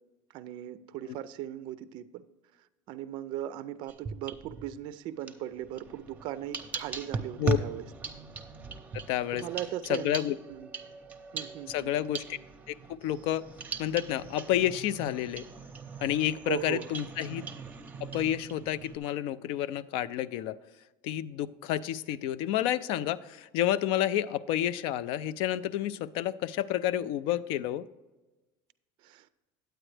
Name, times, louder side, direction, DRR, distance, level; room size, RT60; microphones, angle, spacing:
voice 1, 0.3-2.2 2.9-7.8 9.3-10.2 10.5-10.7 11.3-11.9 16.5-16.9 29.0-29.3, right 12 dB, 50° right, 14 dB, 0.4 m, -38 dB
sound 1, 3.9-4.8 5.2-19.0, right 5 dB, 15° right, 0.7 m, -39 dB
voice 2, 8.9-9.5 9.9-10.4 11.7-12.4 12.7-13.4 13.8-15.4 16.0-17.5 18.0-20.6 21.0-27.9, left 12 dB, 65° left, 17 dB, 0.4 m, -30 dB
9.0 x 8.8 x 3.3 m, 1.1 s
cardioid pair, 145°, 10 cm